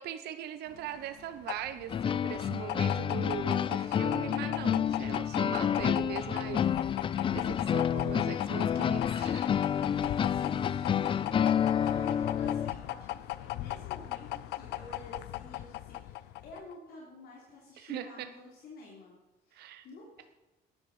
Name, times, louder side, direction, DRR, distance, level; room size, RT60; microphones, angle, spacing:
voice 1, 0.0-6.7 7.0-9.5 17.8-18.3 19.5-19.8, right 10 dB, 75° right, 9 dB, 0.9 m, -40 dB
sound 1, 0.7-16.7, left 16 dB, 90° left, 0.5 m, -38 dB
sound 2, 1.9-12.7, left 8 dB, 30° left, 0.3 m, -29 dB
voice 2, 9.8-19.1 19.5-20.2, left 2 dB, 65° left, -3 dB, 3.2 m, -49 dB
12.5 x 10.5 x 4.9 m, 1.1 s
cardioid pair, 110°, 17 cm